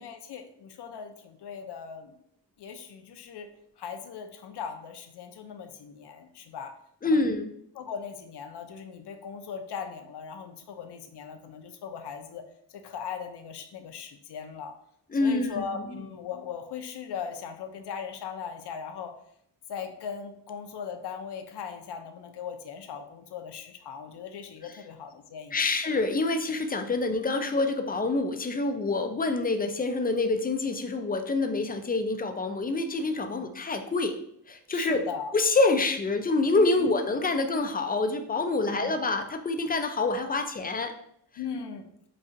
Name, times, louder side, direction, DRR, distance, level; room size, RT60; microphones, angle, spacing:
voice 1, 0.0-2.2 2.6-3.5 3.8-6.7 7.0-7.2 7.7-12.4 12.7-14.7 15.2-19.1 19.7-25.7 33.3-33.5 34.7-35.3 36.8-36.9 38.6-38.9 41.4-41.9, left 7 dB, 65° left, 6 dB, 0.6 m, -39 dB
voice 2, 7.0-7.5 15.1-15.8 25.5-34.2 34.5-35.0 35.3-40.9, left 3 dB, 25° left, 6 dB, 0.3 m, -26 dB
5.1 x 2.3 x 2.6 m, 0.70 s
cardioid pair, 95°, 44 cm